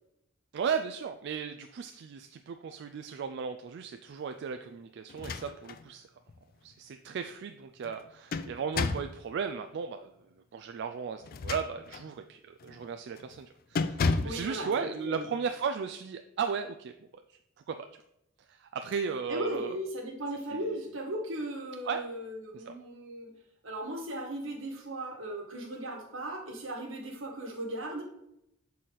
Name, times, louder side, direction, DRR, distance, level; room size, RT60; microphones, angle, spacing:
voice 1, 0.5-6.0 6.6-10.1 10.5-16.9 17.7-17.9 18.5-19.7 20.5-20.7 21.9-22.0 22.5-22.7, right 6 dB, 60° right, 7 dB, 0.3 m, -35 dB
sound 1, 5.1-5.8 6.3-6.4 7.8-9.2 11.2-12.1 12.6-12.8 13.2-13.4 13.8-14.5, left 4 dB, 50° left, 0.4 m, -32 dB
voice 2, 14.2-15.3 19.3-23.3 23.6-28.0, right 1 dB, 80° right, 2 dB, 1.4 m, -37 dB
6.3 x 4.2 x 3.9 m, 0.81 s
head